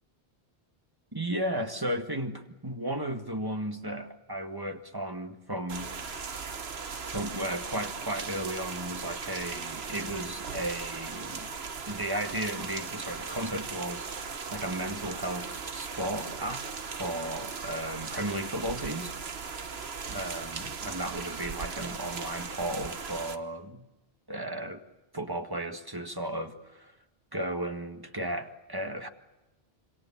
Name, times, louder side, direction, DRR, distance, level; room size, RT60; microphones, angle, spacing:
voice 1, 1.1-5.9 7.1-11.5 11.9-19.1 20.1-23.9 24.3-24.8 25.1-26.9 27.3-29.1, right 1 dB, 20° right, 1.9 m, -35 dB
sound 1, 5.7-23.4, right 5 dB, 75° right, 1.5 m, -38 dB
27.0 x 25.5 x 7.3 m
omnidirectional pair, 1.0 m